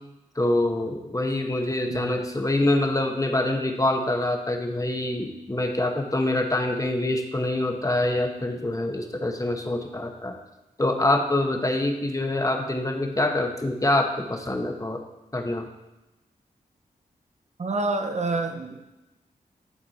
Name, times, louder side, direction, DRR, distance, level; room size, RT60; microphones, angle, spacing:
voice 1, 0.4-10.3 10.8-15.0 15.3-15.7, left 1 dB, 20° left, 3 dB, 1.1 m, -25 dB
voice 2, 1.9-2.2 17.6-18.9, right 2 dB, 50° right, 5 dB, 0.7 m, -28 dB
11.0 x 4.3 x 4.2 m, 1.0 s
cardioid pair, 45°, 15 cm